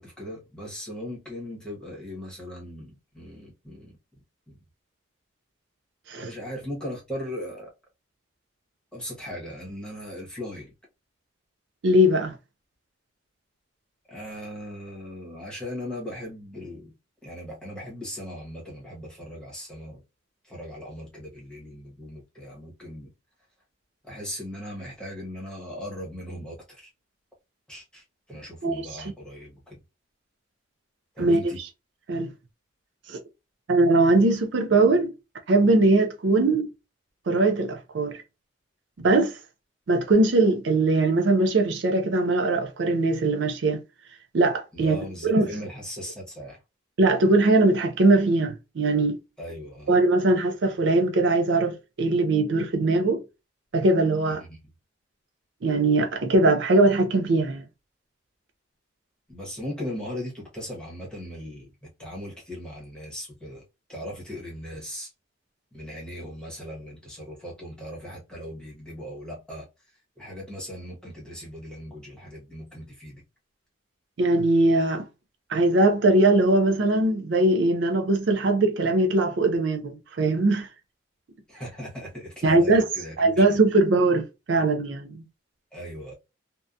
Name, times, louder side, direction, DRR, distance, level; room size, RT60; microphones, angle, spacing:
voice 1, 0.0-4.0 6.1-7.7 8.9-10.7 14.1-16.9 17.2-20.0 20.4-23.1 24.0-26.9 27.7-28.0 28.3-29.8 31.1-31.6 44.7-46.6 49.4-50.0 54.3-54.6 59.3-63.6 63.9-65.1 65.7-69.6 70.2-73.2 81.5-83.4 85.7-86.1, equal, 5° left, 1.0 m, -38 dB
voice 2, 11.8-12.3 28.6-29.1 31.2-31.7 32.1-32.3 33.1-33.2 33.7-35.1 35.5-36.7 37.3-38.2 39.0-39.4 39.9-43.8 44.3-45.0 45.2-45.5 47.0-49.2 49.9-53.2 53.7-54.4 55.6-57.6 74.2-75.0 75.5-80.7 82.4-82.9 83.2-85.2, right 2 dB, 60° right, 0.4 m, -21 dB
2.7 x 2.1 x 2.4 m
head